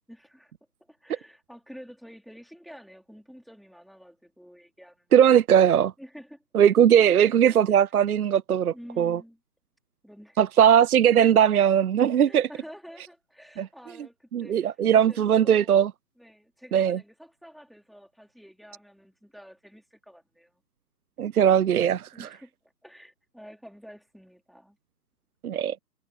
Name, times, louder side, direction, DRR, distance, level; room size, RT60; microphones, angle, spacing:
voice 1, 0.1-0.5 0.8-5.4 6.0-6.4 7.1-7.8 8.7-9.4 10.0-10.5 12.2-14.7 15.1-15.7 16.2-20.5 22.1-22.5 22.8-24.8, equal, ahead, 4.1 m, -49 dB
voice 2, 5.1-5.9 6.5-9.2 10.4-12.5 13.6-13.7 14.3-15.9 16.7-17.0 21.2-22.1 25.4-25.8, right 9 dB, 60° right, 0.8 m, -19 dB
figure-of-eight pair, 145°, 50 cm